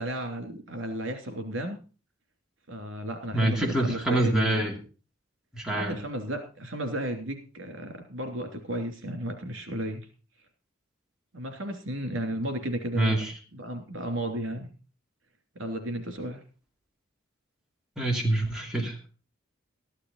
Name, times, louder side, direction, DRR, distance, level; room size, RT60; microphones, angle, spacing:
voice 1, 0.0-1.8 2.7-4.6 5.7-10.1 11.3-13.2 13.5-14.7 15.5-16.4, right 1 dB, 70° right, 5 dB, 3.0 m, -33 dB
voice 2, 3.3-4.8 5.5-6.0 12.9-13.3 18.0-19.0, right 1 dB, 5° right, -1 dB, 2.5 m, -26 dB
13.5 x 11.5 x 4.0 m, 0.34 s
head